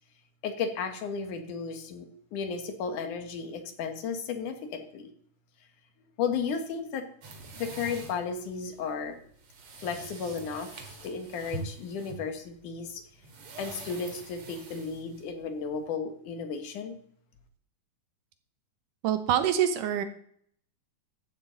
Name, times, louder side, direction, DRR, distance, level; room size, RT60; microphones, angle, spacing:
voice 1, 0.4-5.1 6.2-7.1 7.5-9.2 9.8-13.0 13.6-17.0, left 5 dB, 75° left, 7 dB, 3.0 m, -34 dB
sound 1, 7.2-15.9, right 2 dB, 50° right, 2.7 m, -44 dB
voice 2, 19.0-20.0, right 9 dB, 80° right, 9 dB, 2.7 m, -25 dB
14.0 x 12.0 x 4.0 m, 0.63 s
omnidirectional pair, 3.7 m